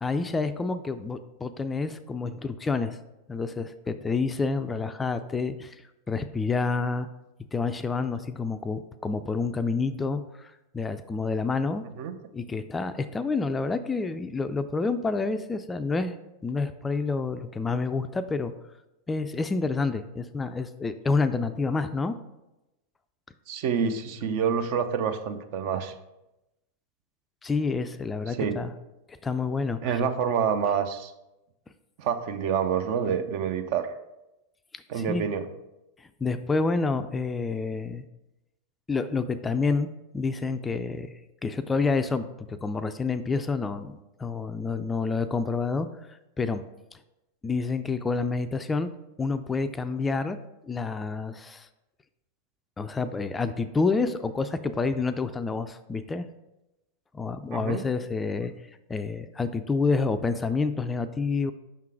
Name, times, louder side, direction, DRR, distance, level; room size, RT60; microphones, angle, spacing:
voice 1, 0.0-3.0 3.3-5.8 6.1-7.1 7.5-11.8 12.3-16.2 16.4-18.5 19.1-22.2 27.4-28.7 29.2-30.0 35.0-35.3 36.0-38.0 38.9-39.9 40.1-41.1 41.4-45.9 46.4-46.6 47.4-48.9 49.2-50.4 50.7-51.7 52.8-56.3 57.1-58.5 58.9-61.5, left 4 dB, 15° left, 10 dB, 0.3 m, -28 dB
voice 2, 23.5-25.9 28.3-28.6 29.8-31.1 32.0-33.9 34.9-35.5 57.5-57.8, right 7 dB, 55° right, 9 dB, 0.5 m, -27 dB
5.8 x 3.7 x 4.6 m, 0.95 s
hypercardioid pair, 100°, 0 cm